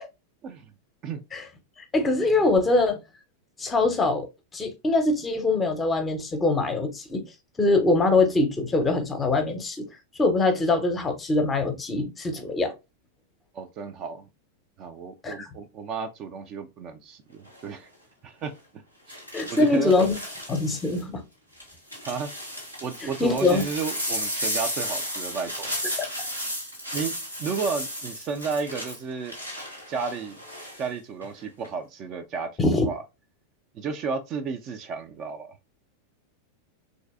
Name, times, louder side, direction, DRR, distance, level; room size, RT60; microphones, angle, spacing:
voice 1, 1.9-3.0 3.6-4.3 4.5-7.2 7.6-9.9 10.2-12.7 15.2-15.5 19.3-20.2 20.5-21.2 23.0-23.6 26.2-26.3 32.6-32.9, left 2 dB, 15° left, 0.6 m, -23 dB
voice 2, 13.5-14.3 14.8-17.9 18.2-18.6 19.1-19.9 22.0-22.3 22.8-25.7 26.9-29.3 29.9-30.4 30.8-33.0 33.7-35.6, right 5 dB, 35° right, 0.3 m, -33 dB
sound 1, 17.5-17.8 19.1-21.0 21.6-30.8 31.2-31.7, equal, 90° right, 1.4 m, -34 dB
3.2 x 2.6 x 2.3 m
figure-of-eight pair, 90°, 0 cm